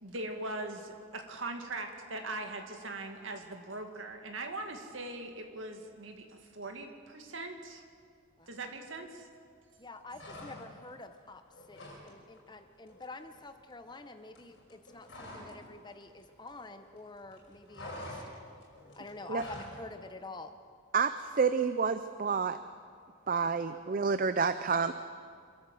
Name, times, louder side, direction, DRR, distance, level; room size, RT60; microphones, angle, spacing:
voice 1, 0.0-7.8 8.5-9.3, right 2 dB, 70° right, 4 dB, 2.1 m, -41 dB
voice 2, 9.8-11.4 11.7-18.2 19.0-20.5, left 2 dB, 20° left, 8 dB, 0.9 m, -47 dB
sound 1, 10.1-10.9 11.2-12.1 12.4-12.6 12.9-15.6 15.9-17.0 17.2-19.8, left 1 dB, 60° left, 5.7 m, -47 dB
voice 3, 20.9-22.6 23.3-24.9, right 5 dB, 40° right, 11 dB, 0.5 m, -29 dB
27.0 x 13.5 x 7.7 m, 2.2 s
head